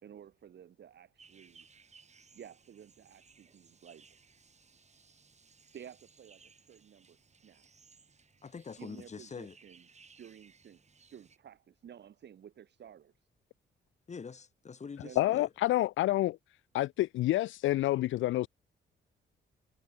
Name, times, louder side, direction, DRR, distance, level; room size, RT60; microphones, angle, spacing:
voice 1, 0.0-1.7 2.3-4.2 5.7-7.2 7.4-7.9 8.8-9.9 10.2-10.8 11.1-13.1 15.0-15.3, right 9 dB, 60° right, 5.8 m, -53 dB
sound 1, 1.2-11.4, right 5 dB, 35° right, 6.7 m, -62 dB
voice 2, 8.4-9.6 14.1-15.5, left 5 dB, 35° left, 2.4 m, -44 dB
voice 3, 15.1-16.4 16.7-18.5, left 15 dB, 80° left, 0.7 m, -28 dB
cardioid pair, 90°, 20 cm